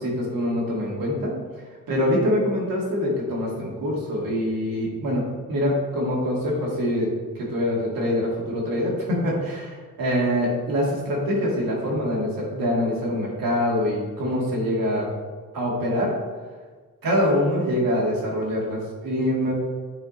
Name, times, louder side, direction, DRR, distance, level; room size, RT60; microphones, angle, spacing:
voice 1, 0.0-1.4 1.9-5.2 5.5-7.1 7.4-15.1 15.5-16.1 17.0-19.5, equal, 85° right, -4 dB, 2.4 m, -24 dB
8.6 x 4.6 x 4.3 m, 1.5 s
wide cardioid pair, 140°, 34 cm